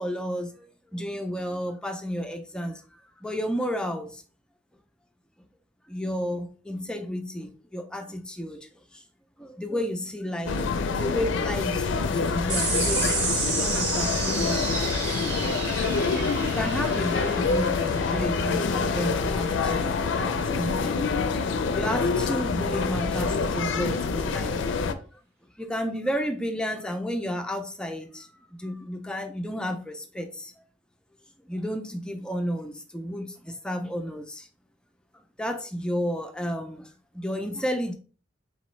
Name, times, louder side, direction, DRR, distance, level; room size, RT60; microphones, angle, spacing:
voice 1, 0.0-2.8 3.2-4.2 5.9-9.0 9.4-10.6 11.0-14.8 16.4-19.9 20.1-21.0 21.7-25.2 25.6-30.6 31.4-34.5 35.4-37.9, equal, 5° left, 0.4 m, -32 dB
sound 1, 10.5-24.9, left 4 dB, 80° left, 0.4 m, -26 dB
sound 2, 12.5-19.3, right 4 dB, 65° right, 1.4 m, -31 dB
4.0 x 3.0 x 3.1 m
head